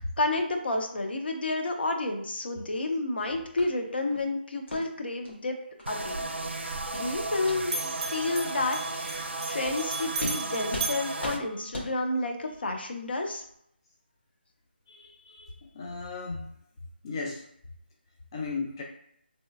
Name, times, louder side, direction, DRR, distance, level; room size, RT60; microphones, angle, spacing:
voice 1, 0.0-5.6 5.9-6.2 6.6-9.2 9.5-13.4, left 2 dB, 65° left, 3 dB, 0.7 m, -30 dB
sound 1, 3.6-3.7 4.1-4.3 4.7-4.8 5.2-5.3 5.8-5.9 6.3-6.5 6.9-7.1 7.4-7.6 8.0-8.1 8.6-8.7 9.1-9.2 9.6-9.8 10.2-10.4 10.7-10.9 11.2-11.4 11.7-11.9, left 1 dB, 80° left, 1.2 m, -38 dB
sound 2, 5.9-11.4, right 2 dB, 85° right, 0.5 m, -35 dB
Bell, 6.0-7.4 7.6-12.1, right 4 dB, 30° right, 0.5 m, -37 dB
voice 2, 14.9-16.4 17.0-17.4 18.3-18.8, left 4 dB, 25° left, -1 dB, 0.3 m, -36 dB
3.1 x 2.9 x 2.4 m, 0.71 s
figure-of-eight pair, 165°, 6 cm